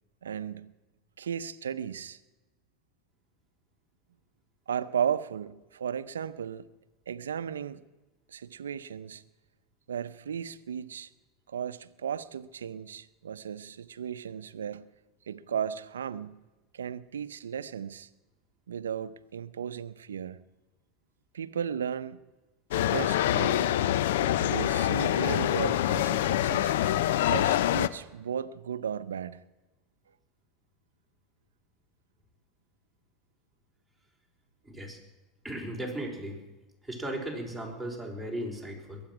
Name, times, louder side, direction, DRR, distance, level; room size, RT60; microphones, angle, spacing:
voice 1, 0.2-0.7 1.2-2.2 4.7-6.7 7.1-7.8 8.3-9.2 9.9-11.1 11.5-14.9 15.3-16.4 16.7-18.1 18.7-20.4 21.3-22.2 22.7-23.7 24.4-26.7 27.3-29.4, right 8 dB, 90° right, 0.6 m, -35 dB
sound 1, 22.7-27.9, left 12 dB, 75° left, 0.6 m, -25 dB
voice 2, 34.6-35.0 35.4-36.4 36.9-39.0, right 1 dB, ahead, 4.9 m, -36 dB
21.5 x 8.8 x 6.1 m
hypercardioid pair, 90°, 0 cm